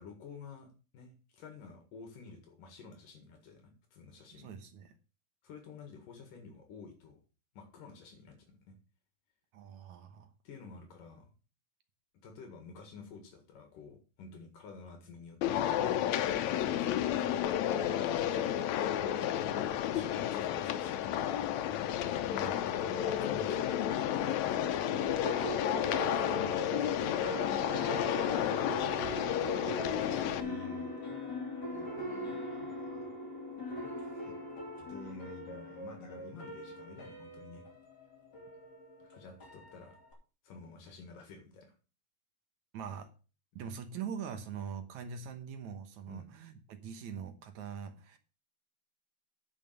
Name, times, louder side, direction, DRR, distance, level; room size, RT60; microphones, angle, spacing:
voice 1, 0.0-4.5 5.4-7.2 7.5-8.7 10.1-11.3 12.2-15.8 16.5-21.6 22.6-25.0 26.1-28.6 29.8-31.0 31.7-33.1 34.0-34.3 34.9-37.6 39.0-40.0 40.4-41.7 46.1-46.3, left 4 dB, 65° left, 4 dB, 3.3 m, -51 dB
voice 2, 4.4-4.9 9.5-10.3 22.3-22.6 42.7-43.1 43.6-48.2, right 7 dB, 65° right, 7 dB, 2.1 m, -43 dB
sound 1, 15.4-30.4, left 11 dB, 85° left, 1.5 m, -31 dB
sound 2, 24.5-40.1, equal, 30° left, 2.9 m, -41 dB
9.9 x 5.5 x 6.7 m, 0.35 s
omnidirectional pair, 4.2 m